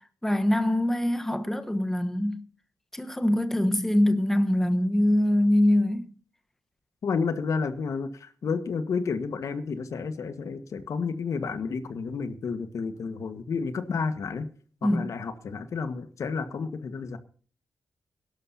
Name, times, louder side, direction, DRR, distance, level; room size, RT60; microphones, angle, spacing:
voice 1, 0.0-2.5 2.9-6.1 14.8-15.1, left 1 dB, 5° left, 1.1 m, -24 dB
voice 2, 7.0-14.5 14.8-17.2, left 5 dB, 70° left, 1.5 m, -31 dB
22.5 x 12.0 x 2.8 m
cardioid pair, 100°, 6 cm